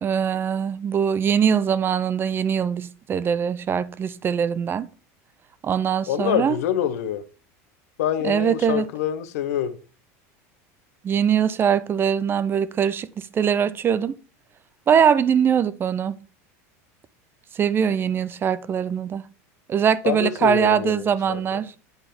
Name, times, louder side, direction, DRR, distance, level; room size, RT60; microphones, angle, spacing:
voice 1, 0.0-4.9 5.6-6.6 8.2-8.9 11.0-14.1 14.9-16.1 17.5-19.2 19.7-21.7, right 8 dB, 25° right, 0.4 m, -22 dB
voice 2, 6.1-7.2 8.0-9.7 20.0-21.0 21.3-21.4, left 10 dB, 85° left, 0.8 m, -25 dB
8.0 x 3.3 x 5.8 m
supercardioid pair, 120°, 8 cm